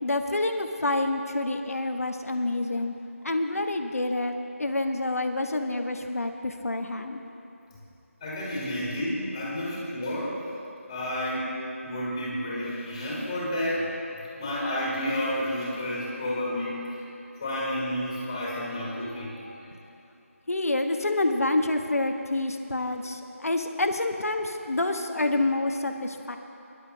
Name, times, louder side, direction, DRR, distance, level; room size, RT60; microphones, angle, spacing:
voice 1, 0.0-2.9 3.2-4.3 4.6-7.2 20.5-26.4, left 2 dB, 80° left, 5 dB, 1.2 m, -27 dB
voice 2, 8.2-10.4 10.9-11.5 11.8-17.0 17.4-19.6, left 1 dB, 20° left, -9 dB, 3.6 m, -31 dB
24.0 x 11.5 x 2.8 m, 2.8 s
figure-of-eight pair, 170°, 8 cm